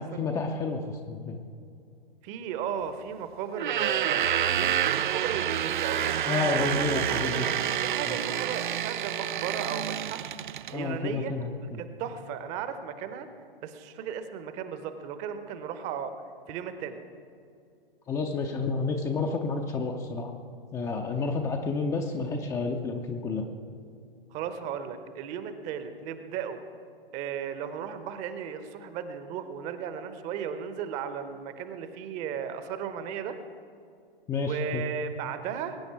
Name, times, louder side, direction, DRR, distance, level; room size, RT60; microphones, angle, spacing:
voice 1, 0.0-1.4 6.3-7.5 8.1-8.2 10.3-10.4 10.7-11.8 18.1-20.3 20.7-23.5 34.3-34.8, left 4 dB, 10° left, 3 dB, 0.6 m, -30 dB
voice 2, 2.2-7.2 7.8-10.2 10.7-11.5 11.8-13.3 13.6-16.1 16.5-17.0 24.3-26.6 27.1-33.4 34.4-35.8, right 8 dB, 25° right, 10 dB, 0.9 m, -35 dB
sound 1, 3.5-10.8, right 10 dB, 55° right, 0.5 m, -28 dB
22.0 x 9.8 x 4.7 m, 2.4 s
figure-of-eight pair, 120°, 29 cm